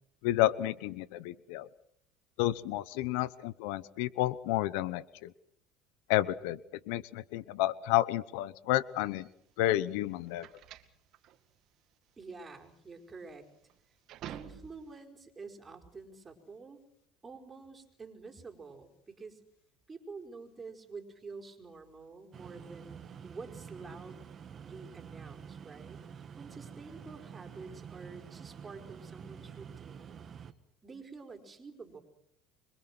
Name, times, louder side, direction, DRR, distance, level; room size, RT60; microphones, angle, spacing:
voice 1, 0.2-1.7 2.4-5.3 6.1-6.6 6.9-9.3 9.6-10.5, left 15 dB, 80° left, 18 dB, 1.0 m, -30 dB
sound 1, 9.0-15.0, right 11 dB, 55° right, 2.2 m, -50 dB
voice 2, 12.2-13.5 14.3-16.8 17.2-19.4 19.9-24.2 24.6-30.3 30.8-32.0, right 4 dB, 25° right, 4 dB, 4.9 m, -48 dB
sound 2, 22.3-30.5, right 7 dB, 40° right, 1.8 m, -48 dB
25.5 x 23.5 x 6.2 m, 0.67 s
supercardioid pair, 100°, 0 cm